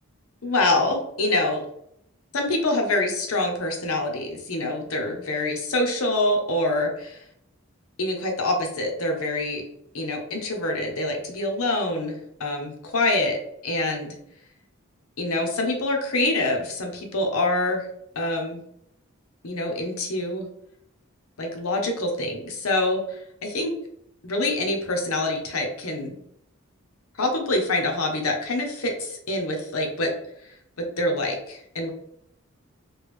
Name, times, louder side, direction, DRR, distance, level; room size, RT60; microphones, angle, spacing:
voice 1, 0.4-1.6 2.3-7.2 8.0-9.6 9.9-13.4 13.6-14.2 15.2-17.8 18.2-18.6 19.4-20.5 21.4-23.0 23.4-23.7 24.2-26.2 27.2-30.1 30.8-31.9, left 2 dB, 85° left, 3 dB, 0.8 m, -25 dB
3.5 x 2.3 x 3.2 m, 0.72 s
head